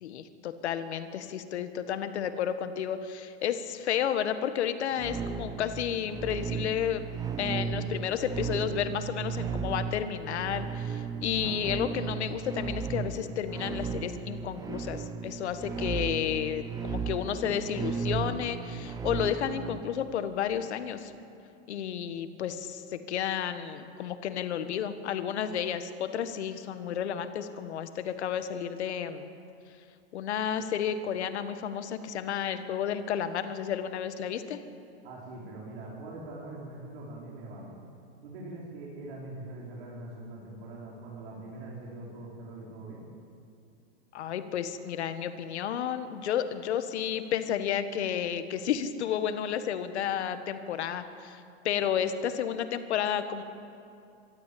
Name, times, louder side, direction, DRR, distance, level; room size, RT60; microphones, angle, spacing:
voice 1, 0.0-7.1 7.4-21.1 21.7-29.3 30.1-34.6 44.1-53.4, left 9 dB, 85° left, 10 dB, 1.5 m, -32 dB
sound 1, 5.0-19.8, right 6 dB, 10° right, 0.7 m, -35 dB
voice 2, 35.0-37.8 38.2-43.0, right 2 dB, 60° right, -4 dB, 4.8 m, -43 dB
24.5 x 13.0 x 8.5 m, 2.6 s
supercardioid pair, 150°, 33 cm